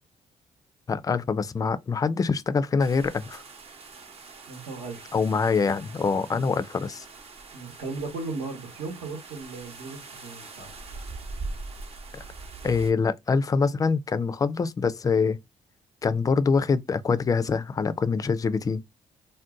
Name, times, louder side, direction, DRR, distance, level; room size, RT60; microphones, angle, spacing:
voice 1, 0.9-3.4 5.1-7.1 12.1-12.2 12.6-15.4 16.0-18.8, left 5 dB, 25° left, 0.3 m, -25 dB
sound 1, 2.8-12.9, right 3 dB, 45° right, 0.7 m, -42 dB
voice 2, 4.4-5.1 7.5-10.7, right 3 dB, 80° right, 1.0 m, -36 dB
2.6 x 2.1 x 3.5 m
cardioid pair, 85°, 14 cm